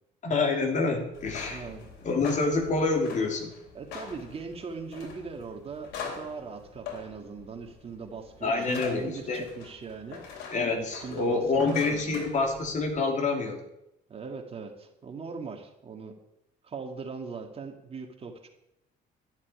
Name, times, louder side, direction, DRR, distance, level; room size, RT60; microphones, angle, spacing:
voice 1, 0.2-1.7 2.0-3.5 8.4-9.5 10.5-13.6, left 3 dB, 45° left, 3 dB, 3.1 m, -27 dB
sound 1, 1.1-13.0, left 6 dB, 90° left, 3.3 m, -44 dB
voice 2, 1.5-1.9 3.7-10.2 10.8-12.2 14.1-16.2 16.6-18.5, right 4 dB, 35° right, 4 dB, 2.2 m, -40 dB
12.5 x 7.3 x 10.0 m, 0.83 s
cardioid pair, 110°, 17 cm